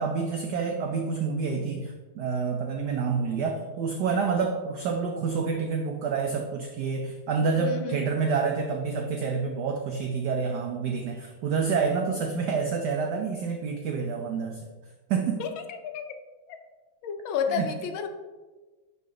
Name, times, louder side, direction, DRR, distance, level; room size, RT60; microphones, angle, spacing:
voice 1, 0.0-14.7 15.1-15.4 17.5-17.7, right 5 dB, 70° right, 3 dB, 1.0 m, -28 dB
voice 2, 7.6-8.1 15.4-16.2 16.5-16.6 17.0-18.1, left 7 dB, 75° left, 6 dB, 1.4 m, -31 dB
11.0 x 3.9 x 3.7 m, 1.3 s
omnidirectional pair, 2.3 m